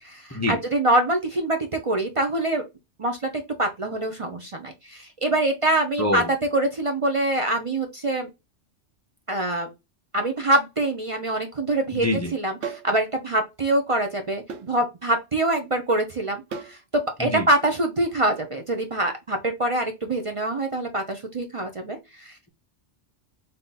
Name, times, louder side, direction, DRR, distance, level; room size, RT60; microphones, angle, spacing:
voice 1, 0.0-2.6 3.0-8.3 9.3-9.7 10.1-12.1 12.3-22.3, right 1 dB, 40° right, 0.4 m, -25 dB
voice 2, 6.0-6.3 11.9-12.3 17.2-17.5, left 1 dB, 20° left, 0.4 m, -25 dB
sound 1, 12.6-12.9 14.5-14.7 16.5-16.8, right 6 dB, 65° right, 0.9 m, -33 dB
3.6 x 2.8 x 4.0 m
omnidirectional pair, 1.3 m